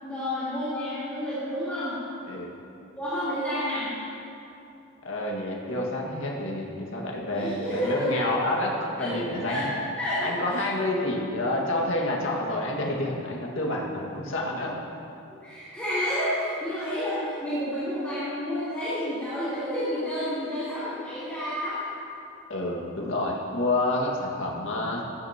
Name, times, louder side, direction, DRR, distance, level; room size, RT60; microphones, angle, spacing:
voice 1, 0.0-2.0 3.0-4.0 7.3-8.3 9.0-9.7 10.0-10.6 15.4-21.8, equal, 5° left, -15 dB, 3.6 m, -30 dB
voice 2, 5.0-9.7 10.2-14.7 22.5-25.0, left 1 dB, 65° left, -2 dB, 2.0 m, -28 dB
16.0 x 14.5 x 3.0 m, 2.7 s
head